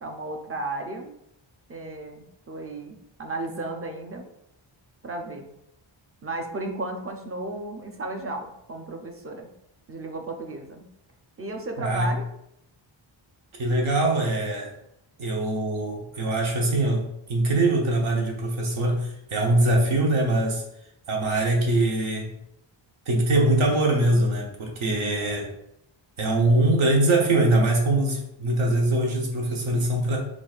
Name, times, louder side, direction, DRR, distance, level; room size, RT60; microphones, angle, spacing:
voice 1, 0.0-1.2 1.7-4.3 5.0-5.5 6.2-9.5 9.9-10.9 11.4-12.3, right 2 dB, 30° right, 3 dB, 0.5 m, -34 dB
voice 2, 11.8-12.1 13.6-14.7 15.2-20.6 21.1-22.3 23.1-25.5 26.2-30.2, right 2 dB, 75° right, 0 dB, 0.9 m, -23 dB
6.0 x 2.5 x 2.4 m, 0.77 s
wide cardioid pair, 150°, 49 cm